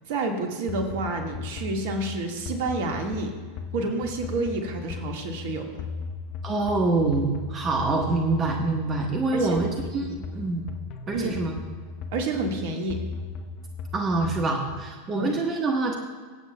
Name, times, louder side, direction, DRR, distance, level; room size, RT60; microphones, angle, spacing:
voice 1, 0.1-3.3 3.7-5.7 9.3-9.7 10.0-10.2 11.1-11.4 12.1-13.0 15.2-15.4, right 2 dB, 55° right, 4 dB, 1.6 m, -29 dB
sound 1, 0.7-14.9, left 5 dB, 45° left, 0.8 m, -37 dB
voice 2, 6.4-10.0 10.3-10.6 11.1-11.5 13.9-15.9, right 3 dB, 30° right, 2 dB, 1.2 m, -25 dB
24.5 x 8.2 x 2.2 m, 1.5 s
figure-of-eight pair, 90°, 0 cm